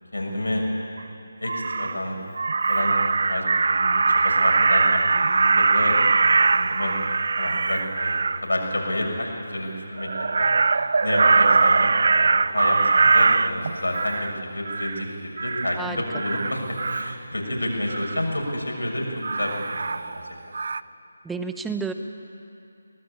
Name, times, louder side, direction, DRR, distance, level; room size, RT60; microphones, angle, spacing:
voice 1, 0.1-0.6 1.4-2.2 2.7-6.9 7.4-10.1 10.4-20.2, left 1 dB, 70° left, 0 dB, 6.8 m, -29 dB
Crow, 1.0-1.1 1.4-2.0 2.4-8.4 10.0-14.3 14.7-15.0 15.4-15.8 16.1-17.1 17.9-18.2 19.2-20.3 20.5-20.8, right 4 dB, 50° right, 0.5 m, -21 dB
voice 2, 21.2-21.9, right 5 dB, 5° right, 6 dB, 0.8 m, -30 dB
23.5 x 19.0 x 8.9 m, 2.7 s
figure-of-eight pair, 155°, 0 cm